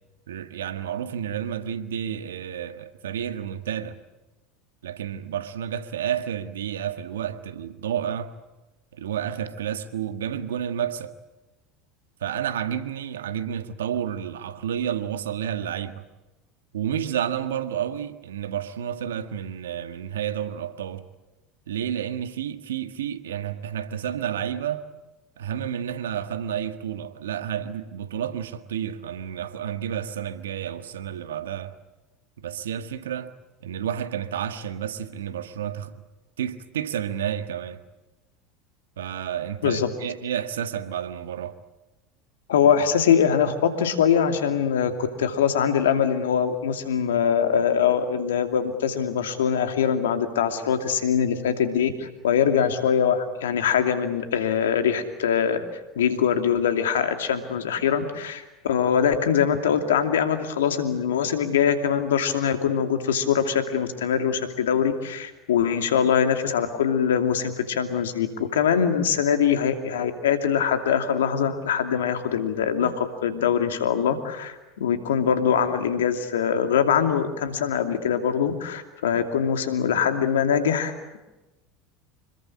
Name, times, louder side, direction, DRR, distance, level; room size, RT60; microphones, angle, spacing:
voice 1, 0.3-4.0 4.8-8.3 8.9-11.1 12.2-16.0 16.7-21.1 21.7-24.8 25.4-31.7 32.4-33.3 33.6-35.9 36.4-37.8 39.0-41.5, right 9 dB, 85° right, 1.6 m, -30 dB
voice 2, 42.5-55.6 56.0-81.2, left 8 dB, 85° left, 2.6 m, -23 dB
26.0 x 22.0 x 8.6 m
hypercardioid pair, 85°, 0 cm